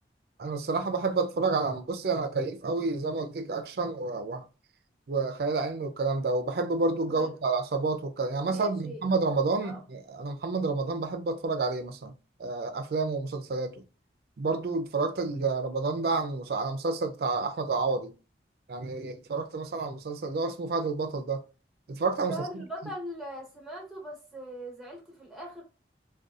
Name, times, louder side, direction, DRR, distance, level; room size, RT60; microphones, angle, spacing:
voice 1, 0.4-4.4 5.1-12.1 12.4-13.8 14.4-18.1 18.7-21.4 21.9-22.3, right 3 dB, 55° right, 0.4 m, -29 dB
voice 2, 8.5-9.0 9.6-9.8 22.3-25.7, right 1 dB, ahead, 0.7 m, -40 dB
2.6 x 2.2 x 2.4 m
head